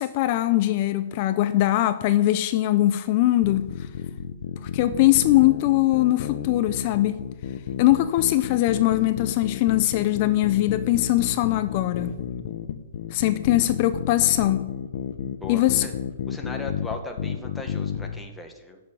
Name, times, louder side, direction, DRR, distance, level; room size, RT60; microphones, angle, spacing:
voice 1, 0.0-3.7 4.6-7.2 7.8-12.1 13.1-14.7 15.5-15.9, left 15 dB, 40° left, 0.6 m, -21 dB
sound 1, 3.4-18.2, left 8 dB, 55° left, 1.0 m, -32 dB
voice 2, 15.4-15.9 16.3-18.8, left 3 dB, 5° left, 1.5 m, -37 dB
11.5 x 7.1 x 9.3 m
hypercardioid pair, 155°, 0 cm